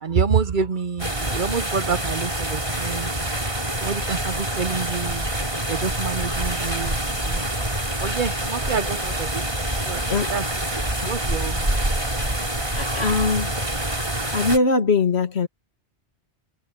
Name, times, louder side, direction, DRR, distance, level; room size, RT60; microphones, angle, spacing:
voice 1, 0.0-3.1 3.8-5.3 5.7-7.0 7.3-7.5 8.0-9.4 9.9-10.4 11.0-11.6, right 6 dB, 50° right, 0.9 m, -27 dB
sound 1, 1.0-14.6, right 1 dB, 30° right, 3.8 m, -26 dB
voice 2, 10.1-10.4 10.9-11.1 12.7-13.5 14.3-15.5, left 4 dB, 75° left, 2.0 m, -22 dB
omnidirectional pair, 1.1 m